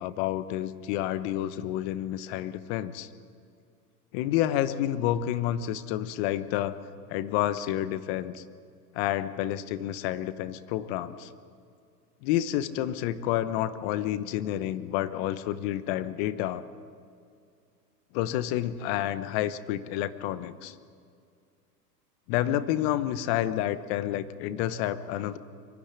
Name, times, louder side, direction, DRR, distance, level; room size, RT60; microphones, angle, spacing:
voice 1, 0.0-3.1 4.1-6.8 7.1-8.4 8.9-11.3 12.2-16.6 18.1-20.7 22.3-25.4, left 12 dB, 35° left, 14 dB, 0.9 m, -29 dB
23.5 x 12.0 x 10.0 m, 2.2 s
hypercardioid pair, 130°, 50 cm